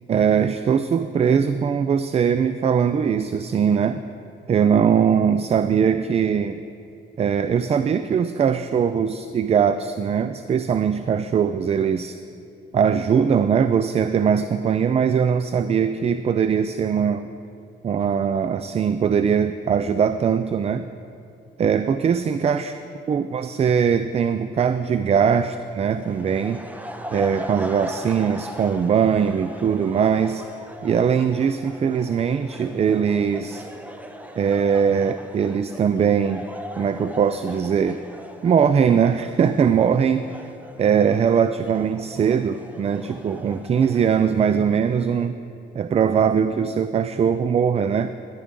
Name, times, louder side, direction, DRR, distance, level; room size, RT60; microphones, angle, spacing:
voice 1, 0.1-4.0 4.5-6.6 7.2-12.2 12.7-17.3 17.8-20.8 21.6-22.7 23.1-26.6 27.1-30.5 30.8-33.7 34.4-36.4 36.8-38.0 38.4-40.3 40.8-45.4 45.7-48.1, right 7 dB, 30° right, 11 dB, 0.3 m, -21 dB
sound 1, 25.9-45.3, right 1 dB, 10° right, 0.8 m, -39 dB
13.5 x 10.5 x 3.8 m, 2.6 s
cardioid pair, 90°, 20 cm